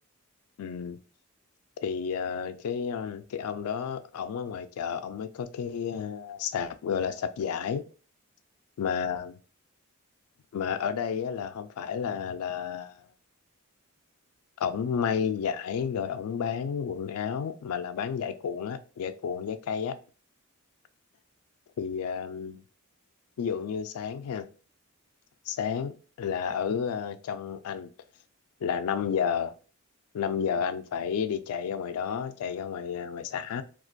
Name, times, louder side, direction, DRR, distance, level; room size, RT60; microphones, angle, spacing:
voice 1, 0.6-1.0 1.8-7.8 8.8-9.4 10.5-13.0 14.6-20.0 21.8-22.6 23.4-24.5 25.5-27.9 28.6-29.5 30.1-33.6, left 7 dB, 75° left, 0.3 m, -31 dB
2.4 x 2.2 x 2.5 m
head